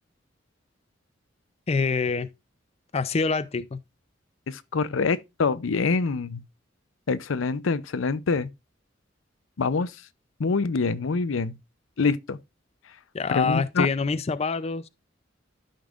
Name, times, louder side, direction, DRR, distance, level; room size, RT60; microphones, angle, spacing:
voice 1, 1.7-2.3 2.9-3.8 13.1-14.9, left 4 dB, 35° left, 0.4 m, -26 dB
voice 2, 4.5-6.4 7.1-8.5 9.6-9.9 10.4-11.6 12.0-12.4 13.3-13.9, left 4 dB, 85° left, 0.6 m, -25 dB
12.5 x 5.3 x 2.4 m
head